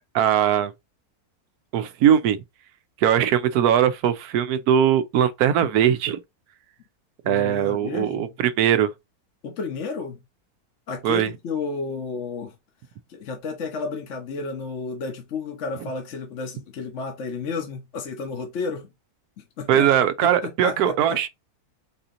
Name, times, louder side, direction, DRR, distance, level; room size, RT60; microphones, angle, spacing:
voice 1, 0.1-0.7 1.7-2.4 3.0-6.2 7.3-8.9 11.0-11.3 19.7-21.3, right 10 dB, 85° right, 1.1 m, -20 dB
voice 2, 7.2-8.4 9.4-10.2 10.9-12.5 13.1-18.9 19.4-19.8 20.4-21.3, left 4 dB, 55° left, 1.2 m, -32 dB
4.2 x 2.8 x 3.7 m
omnidirectional pair, 1.6 m